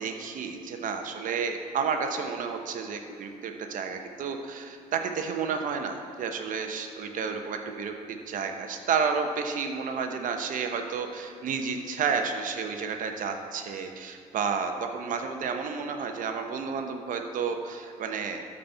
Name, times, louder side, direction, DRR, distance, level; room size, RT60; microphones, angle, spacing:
voice 1, 0.0-18.4, right 5 dB, 60° right, 5 dB, 0.9 m, -31 dB
13.0 x 4.3 x 4.4 m, 2.5 s
supercardioid pair, 65°, 15 cm